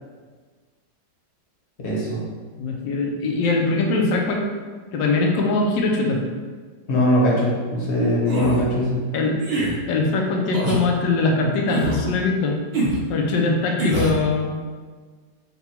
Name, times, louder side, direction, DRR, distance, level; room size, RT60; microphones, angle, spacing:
voice 1, 1.8-2.2 6.9-9.0, left 1 dB, 45° left, -5 dB, 1.0 m, -21 dB
voice 2, 2.6-4.5 4.9-6.2 9.1-9.4 9.9-12.6 13.1-14.5, left 3 dB, 85° left, 0 dB, 1.3 m, -22 dB
sound 1, 8.3-8.6 9.4-9.7 10.5-10.8 11.7-12.0 12.7-13.0 13.8-14.2, right 1 dB, 55° right, 0.7 m, -23 dB
3.9 x 2.2 x 4.3 m, 1.5 s
omnidirectional pair, 1.9 m